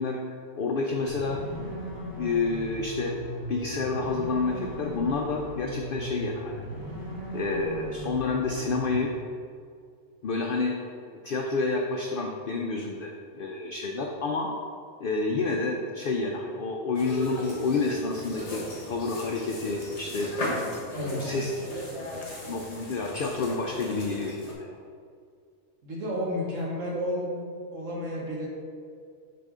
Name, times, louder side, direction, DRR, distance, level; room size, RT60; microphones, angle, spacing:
voice 1, 0.0-1.7 2.2-3.2 3.5-6.6 7.3-9.1 10.2-10.7 11.2-14.5 15.0-20.3 21.2-21.5 22.5-24.7, left 3 dB, 65° left, 1 dB, 0.5 m, -29 dB
sound 1, 1.1-9.0, equal, 15° right, 1.0 m, -38 dB
sound 2, 16.9-24.5, left 1 dB, 30° left, 1.1 m, -37 dB
voice 2, 20.9-21.3 25.8-27.4 27.7-28.5, equal, 60° right, -4 dB, 1.5 m, -31 dB
6.7 x 5.2 x 3.6 m, 2.2 s
omnidirectional pair, 1.5 m